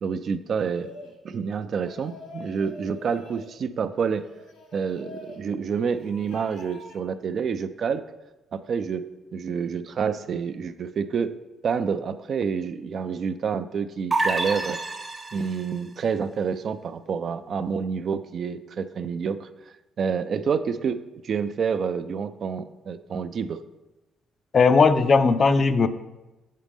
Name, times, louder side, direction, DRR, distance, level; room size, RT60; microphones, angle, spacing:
voice 1, 0.0-0.9 1.2-4.2 4.7-8.0 8.5-9.0 9.3-11.3 11.6-14.8 15.3-19.5 20.0-21.0 21.2-23.6, right 6 dB, 55° right, 11 dB, 0.3 m, -28 dB
sound 1, 0.6-1.2 1.7-3.5 4.1-5.4 5.9-7.0, left 1 dB, 80° left, 1.4 m, -45 dB
sound 2, 14.1-15.7, right 3 dB, 25° right, 0.7 m, -27 dB
voice 2, 24.5-25.9, left 4 dB, 45° left, 11 dB, 0.4 m, -18 dB
7.4 x 4.0 x 3.5 m, 1.0 s
cardioid pair, 90°, 0 cm